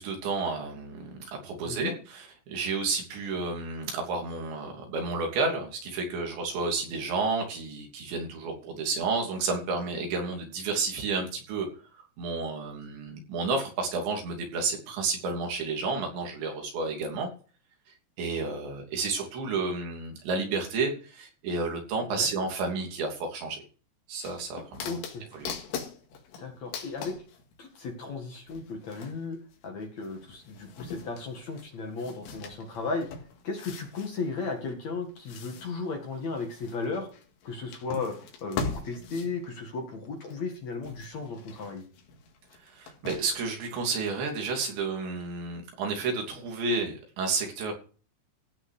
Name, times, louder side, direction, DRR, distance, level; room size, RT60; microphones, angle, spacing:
voice 1, 0.0-11.7 11.9-17.3 18.2-23.6 24.1-25.0 25.3-25.6 42.6-47.7, right 4 dB, 85° right, 2 dB, 5.2 m, -31 dB
voice 2, 1.6-1.9 22.1-22.3 24.8-25.3 26.4-27.2 27.6-29.4 29.6-33.1 33.4-37.1 37.4-38.2 38.4-41.8, left 4 dB, 50° left, 3 dB, 2.6 m, -35 dB
sound 1, 24.2-27.9 28.5-40.5 40.8-43.5 43.9-44.0, left 5 dB, 85° left, 4.3 m, -41 dB
16.0 x 6.1 x 6.6 m, 0.38 s
omnidirectional pair, 5.0 m